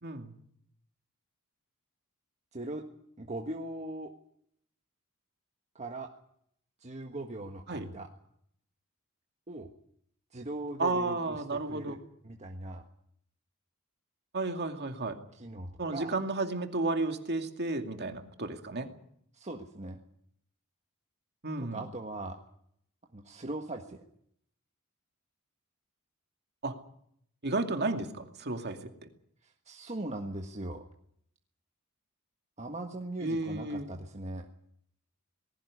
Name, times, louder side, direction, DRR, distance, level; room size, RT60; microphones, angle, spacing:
voice 1, 0.0-0.3 7.7-7.9 10.8-12.0 14.3-15.2 15.8-18.9 21.4-21.8 26.6-26.7 27.4-28.8 33.2-33.9, right 2 dB, 50° right, 5 dB, 2.4 m, -32 dB
voice 2, 2.5-2.8 3.2-4.1 5.7-6.1 6.8-8.1 9.5-9.7 10.3-12.8 15.3-16.2 19.3-20.0 21.6-22.4 23.1-24.0 29.4-30.8 32.6-34.5, right 2 dB, 30° right, 3 dB, 1.5 m, -40 dB
19.5 x 16.5 x 9.7 m, 0.69 s
head